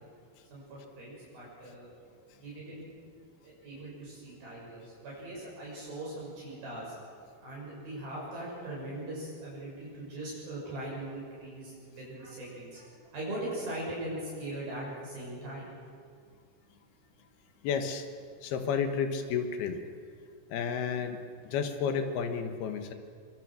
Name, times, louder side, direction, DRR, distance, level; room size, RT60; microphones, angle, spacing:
voice 1, 0.5-1.9 2.4-2.8 3.4-7.0 7.4-15.7, right 1 dB, 65° right, -6 dB, 8.9 m, -40 dB
voice 2, 17.6-18.1 18.4-19.8 20.5-22.9, left 6 dB, 80° left, 7 dB, 3.2 m, -31 dB
25.0 x 24.0 x 6.4 m, 2.2 s
omnidirectional pair, 4.5 m